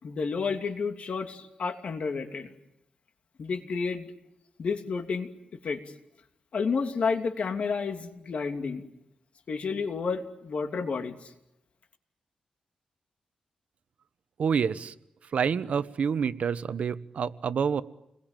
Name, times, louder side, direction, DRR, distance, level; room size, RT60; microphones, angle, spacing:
voice 1, 0.0-2.5 3.4-4.1 4.6-5.8 6.5-8.8 9.5-11.3, left 5 dB, 60° left, 6 dB, 2.9 m, -31 dB
voice 2, 14.4-14.9 15.3-17.8, right 6 dB, 70° right, 14 dB, 1.1 m, -27 dB
29.0 x 21.5 x 9.2 m, 0.85 s
cardioid pair, 95°, 2 cm